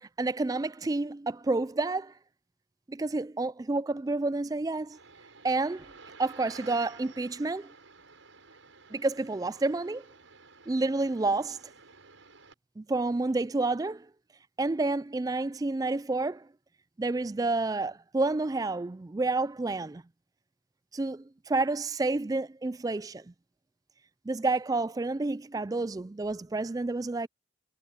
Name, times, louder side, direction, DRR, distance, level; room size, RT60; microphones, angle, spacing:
voice 1, 0.0-2.1 2.9-5.0 5.4-5.9 6.2-7.7 8.9-10.0 10.7-11.6 12.8-14.1 14.6-16.4 17.0-20.0 20.9-23.2 24.3-27.3, right 2 dB, 20° right, 0.3 m, -29 dB
sound 1, 4.9-12.5, right 4 dB, 85° right, 6.7 m, -52 dB
head